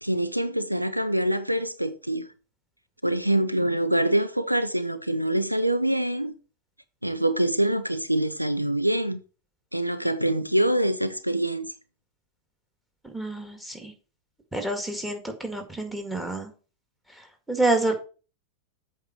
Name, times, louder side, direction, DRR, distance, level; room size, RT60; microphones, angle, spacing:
voice 1, 0.0-2.3 3.0-6.3 7.0-9.2 9.7-11.7, right 1 dB, 90° right, 0.6 m, -25 dB
voice 2, 13.0-13.9 14.5-16.5 17.1-17.9, right 2 dB, 5° right, 2.0 m, -28 dB
8.0 x 4.6 x 6.1 m
figure-of-eight pair, 90°, 0 cm